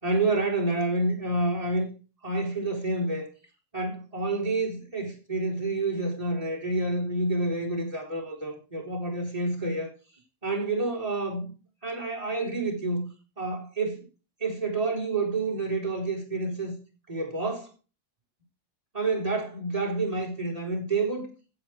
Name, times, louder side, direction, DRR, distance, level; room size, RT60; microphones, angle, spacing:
voice 1, 0.0-1.9 2.2-3.3 3.7-9.9 10.4-11.5 11.8-13.1 13.4-14.1 14.4-16.7 17.1-17.7 18.9-21.3, right 2 dB, 25° right, 4.1 m, -28 dB
16.0 x 7.1 x 4.7 m
omnidirectional pair, 1.4 m